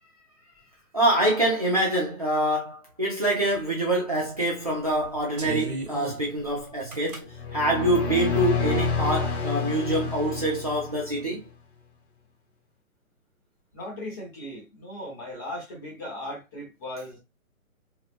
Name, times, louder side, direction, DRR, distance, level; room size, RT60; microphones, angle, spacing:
voice 1, 0.9-11.4, right 1 dB, 30° right, 0.5 m, -25 dB
sound 1, 3.5-3.6 4.1-4.4 4.9-7.2 7.9-8.4, right 3 dB, 85° right, 1.4 m, -36 dB
sound 2, 7.3-11.2, left 5 dB, 45° left, 1.2 m, -28 dB
voice 2, 13.7-17.2, left 1 dB, 15° left, 0.9 m, -37 dB
3.2 x 2.9 x 2.4 m
hypercardioid pair, 160°, 43 cm